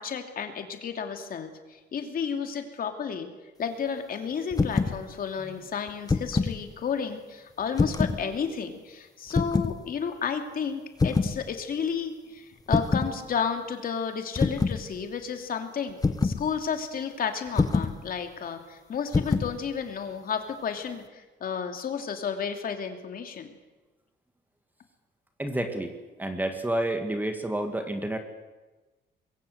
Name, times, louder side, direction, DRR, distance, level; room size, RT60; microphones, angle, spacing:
voice 1, 0.0-3.3 3.6-16.0 16.2-23.5, left 6 dB, 50° left, 6 dB, 2.8 m, -32 dB
sound 1, 4.5-5.0 5.9-6.6 7.7-8.2 9.3-9.7 11.0-11.4 12.7-13.1 14.4-14.8 16.0-16.4 17.6-18.0 19.1-19.5, left 4 dB, 20° left, 1.2 m, -25 dB
voice 2, 25.4-25.9 26.2-28.2, right 1 dB, 10° right, 6 dB, 2.1 m, -29 dB
25.0 x 22.0 x 8.0 m, 1.2 s
cardioid pair, 160°, 19 cm